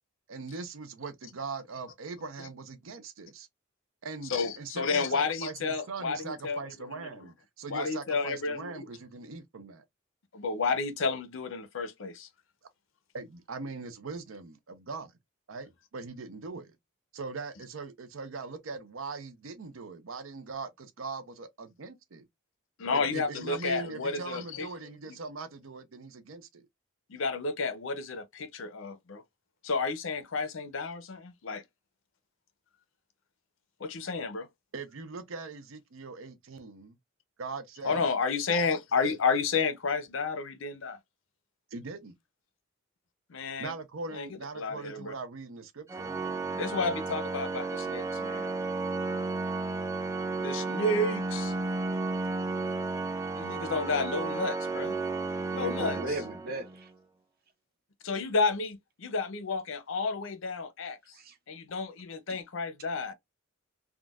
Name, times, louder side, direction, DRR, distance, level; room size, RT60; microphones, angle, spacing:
voice 1, 0.3-3.5 4.0-9.8 13.1-15.1 15.5-16.7 17.1-22.2 22.9-26.7 34.7-37.0 37.4-38.0 41.7-42.1 43.6-46.1, right 4 dB, 70° right, 0.6 m, -41 dB
voice 2, 4.3-7.1 7.7-8.9 10.3-12.3 22.8-24.7 25.1-25.2 27.1-29.2 29.6-31.6 33.8-34.5 37.8-41.0 43.3-43.8 44.1-44.3 44.6-45.1 46.5-48.5 50.4-51.5 53.3-55.0 55.5-56.0 58.0-61.0 61.5-63.1, left 4 dB, 65° left, 0.6 m, -31 dB
Organ, 45.9-56.9, right 3 dB, 15° right, 0.4 m, -33 dB
voice 3, 55.5-56.9 61.1-61.4, right 2 dB, 45° right, 0.8 m, -37 dB
3.6 x 2.3 x 2.3 m
head